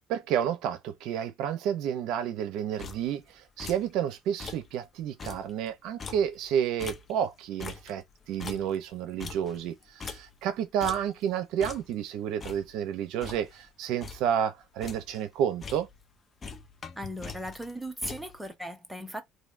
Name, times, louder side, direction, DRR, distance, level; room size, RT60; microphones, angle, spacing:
voice 1, 0.1-15.9, right 9 dB, 75° right, 0.5 m, -30 dB
sound 1, 2.8-3.3 3.6-4.0 4.3-4.8 5.0-7.3 7.6-10.5 10.8-11.3 11.6-12.0 12.4-13.7 14.0-14.4 14.6-15.3 15.6-16.1 16.4-18.5, left 5 dB, 30° left, 0.6 m, -43 dB
voice 2, 17.0-19.2, equal, 5° right, 0.8 m, -37 dB
3.2 x 2.6 x 2.5 m
cardioid pair, 115°, 0 cm